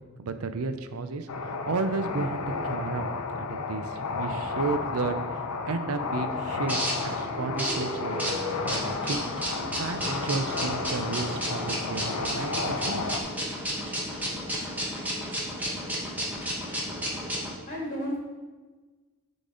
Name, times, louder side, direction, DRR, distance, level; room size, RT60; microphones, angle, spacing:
voice 1, 0.2-1.3 1.7-3.1 3.3-5.2 5.7-8.4 8.7-9.3 9.7-13.2, right 4 dB, 80° right, 9 dB, 0.5 m, -33 dB
sound 1, 1.3-13.2, left 4 dB, 80° left, 0.6 m, -32 dB
sound 2, 5.9-17.5, equal, 5° right, 1.1 m, -32 dB
voice 2, 16.6-17.1 17.6-18.2, equal, 35° left, -4 dB, 2.3 m, -34 dB
9.9 x 4.0 x 3.8 m, 1.3 s
head